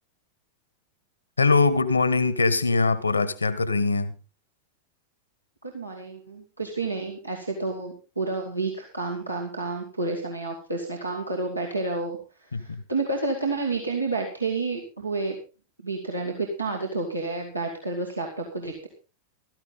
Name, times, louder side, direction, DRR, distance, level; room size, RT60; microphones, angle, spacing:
voice 1, 1.4-4.1 12.5-12.8, left 3 dB, 80° left, 16 dB, 1.3 m, -22 dB
voice 2, 5.6-15.3 15.8-18.9, right 3 dB, 85° right, -1 dB, 2.6 m, -30 dB
15.5 x 14.0 x 4.0 m, 0.33 s
figure-of-eight pair, 90°, 0 cm